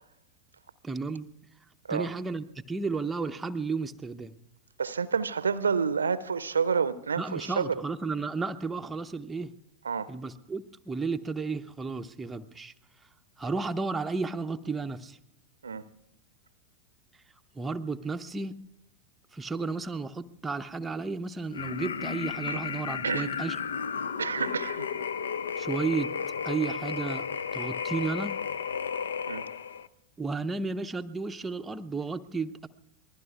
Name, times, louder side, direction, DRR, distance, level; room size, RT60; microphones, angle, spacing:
voice 1, 0.8-1.3 1.9-4.3 7.2-9.5 10.1-12.7 13.4-15.2 17.5-18.6 19.3-23.6 25.6-26.1 26.4-27.3 27.5-28.4 30.2-32.7, right 4 dB, 10° right, 0.6 m, -33 dB
voice 2, 4.8-7.7 9.8-10.1 15.6-15.8 22.5-22.6 23.0-23.3 24.2-24.9 29.3-29.4, right 5 dB, 75° right, 0.6 m, -29 dB
sound 1, 21.5-29.9, left 7 dB, 65° left, 0.5 m, -33 dB
27.0 x 20.0 x 2.4 m
figure-of-eight pair, 90°, 0 cm